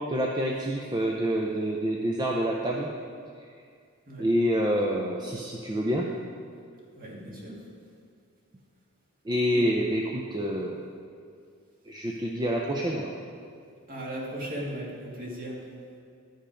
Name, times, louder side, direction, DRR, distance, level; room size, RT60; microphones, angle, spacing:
voice 1, 0.1-2.9 4.2-6.1 9.2-10.8 11.8-13.1, equal, 20° right, -1 dB, 0.5 m, -27 dB
voice 2, 6.9-7.5 9.5-9.6 13.9-15.6, right 1 dB, 40° right, -3 dB, 1.7 m, -37 dB
11.5 x 5.3 x 5.0 m, 2.3 s
head